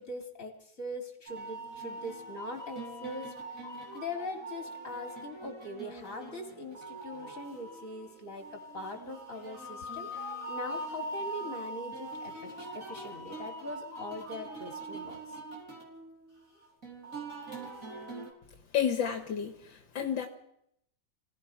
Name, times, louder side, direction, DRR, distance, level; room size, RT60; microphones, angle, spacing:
voice 1, 0.0-3.7 3.9-15.4, left 1 dB, 40° left, 3 dB, 3.9 m, -42 dB
sound 1, 1.3-18.3, right 1 dB, 40° right, 5.5 m, -42 dB
voice 2, 18.7-20.3, left 8 dB, 75° left, 6 dB, 2.2 m, -31 dB
26.0 x 17.5 x 5.9 m, 0.74 s
omnidirectional pair, 2.1 m